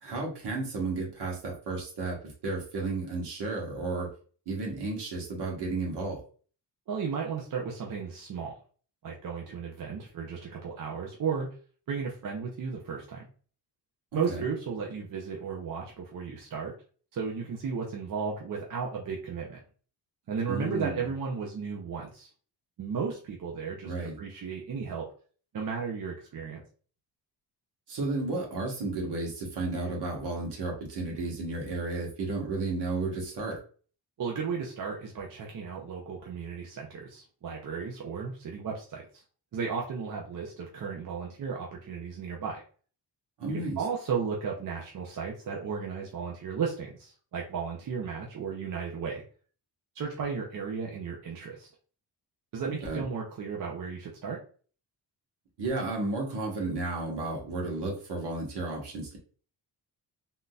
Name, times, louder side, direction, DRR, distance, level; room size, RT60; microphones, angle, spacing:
voice 1, 0.0-2.2 2.4-4.1 4.5-6.2 14.1-14.4 20.5-21.0 23.8-24.2 27.9-33.6 43.4-43.8 52.6-53.1 55.6-59.2, right 3 dB, 70° right, -1 dB, 1.4 m, -33 dB
voice 2, 6.9-8.6 9.0-11.5 11.9-13.2 14.1-16.7 17.1-19.6 20.3-22.3 22.8-25.1 25.5-26.6 34.2-39.2 39.5-42.6 43.5-49.2 49.9-51.7 52.5-54.4, right 6 dB, 50° right, -1 dB, 0.7 m, -34 dB
3.7 x 2.6 x 2.3 m, 0.41 s
wide cardioid pair, 140°, 42 cm